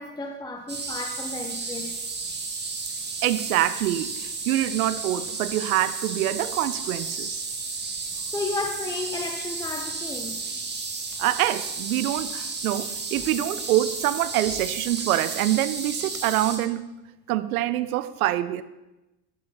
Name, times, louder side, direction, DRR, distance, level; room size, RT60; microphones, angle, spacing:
voice 1, 0.0-1.9 8.0-10.6 13.1-13.3 14.5-14.6, left 3 dB, 10° left, 6 dB, 0.7 m, -33 dB
sound 1, 0.7-16.6, right 4 dB, 20° right, 2.5 m, -33 dB
voice 2, 3.2-4.1 4.5-7.4 11.2-16.9 17.3-18.6, right 14 dB, 60° right, 14 dB, 0.8 m, -25 dB
13.0 x 9.4 x 5.7 m, 0.99 s
figure-of-eight pair, 75°, 50 cm